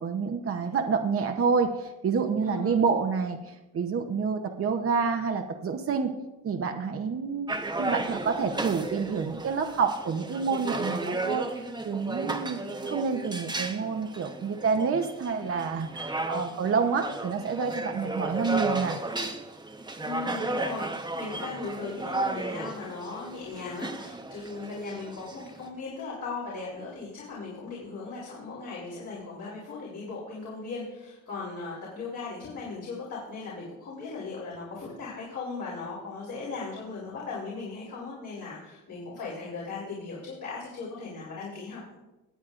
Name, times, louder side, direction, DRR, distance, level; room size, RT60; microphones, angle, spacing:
voice 1, 0.0-6.1 6.4-19.0, right 5 dB, 45° right, 5 dB, 0.8 m, -28 dB
voice 2, 2.4-2.8 20.0-41.9, left 4 dB, 65° left, -6 dB, 3.6 m, -38 dB
sound 1, 7.5-25.7, right 2 dB, 15° right, 0.9 m, -34 dB
19.0 x 8.2 x 2.5 m, 1.0 s
cardioid pair, 90°, 33 cm